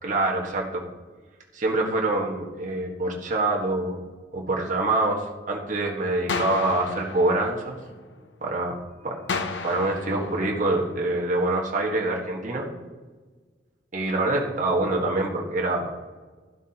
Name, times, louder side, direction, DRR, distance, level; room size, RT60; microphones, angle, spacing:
voice 1, 0.0-0.8 1.5-4.0 4.3-7.8 8.4-9.2 9.6-12.7 13.9-16.1, right 2 dB, 45° right, -1 dB, 1.5 m, -25 dB
sound 1, 6.3-8.3 9.3-11.3, left 4 dB, 80° left, 0.7 m, -34 dB
12.0 x 11.0 x 2.9 m, 1.4 s
head